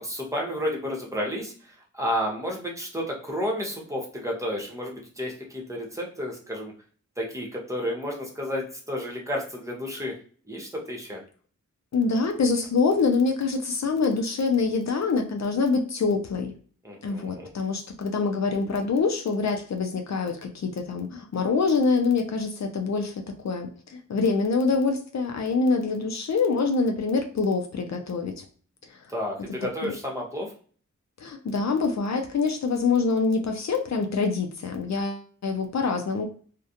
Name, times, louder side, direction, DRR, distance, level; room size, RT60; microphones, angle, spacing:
voice 1, 0.0-6.7 7.2-10.1 10.5-11.2 16.8-17.5 29.1-30.5, equal, 10° right, -1 dB, 0.9 m, -31 dB
voice 2, 11.9-16.5 17.0-28.4 29.8-29.9 31.2-36.2, left 4 dB, 60° left, 4 dB, 0.5 m, -25 dB
2.3 x 2.1 x 2.7 m, 0.43 s
wide cardioid pair, 60°, 30 cm